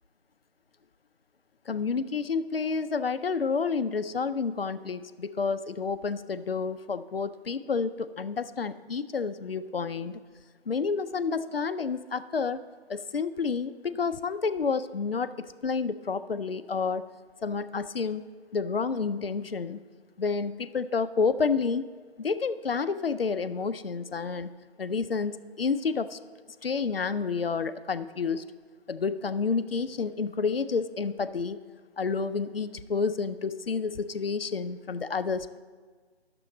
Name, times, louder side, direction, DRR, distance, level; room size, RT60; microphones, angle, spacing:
voice 1, 1.7-10.2 10.7-12.6 12.9-17.0 17.4-18.3 18.5-19.8 20.2-21.8 22.2-24.5 24.8-26.2 26.6-28.4 28.9-31.6 32.0-35.6, left 5 dB, 60° left, 12 dB, 0.5 m, -29 dB
10.5 x 6.8 x 3.9 m, 1.5 s
figure-of-eight pair, 160°, 33 cm